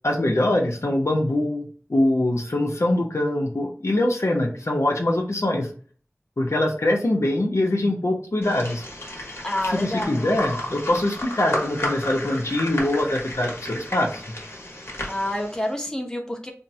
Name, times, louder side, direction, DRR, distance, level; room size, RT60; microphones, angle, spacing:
voice 1, 0.0-5.7 6.4-8.8 9.7-14.2, left 1 dB, 75° left, 1 dB, 0.6 m, -23 dB
sound 1, 8.4-15.7, left 1 dB, 55° left, 1.0 m, -33 dB
voice 2, 9.4-10.2 15.1-16.5, left 1 dB, 10° left, 2 dB, 0.7 m, -28 dB
3.5 x 2.0 x 2.7 m, 0.42 s
wide cardioid pair, 45°, 5 cm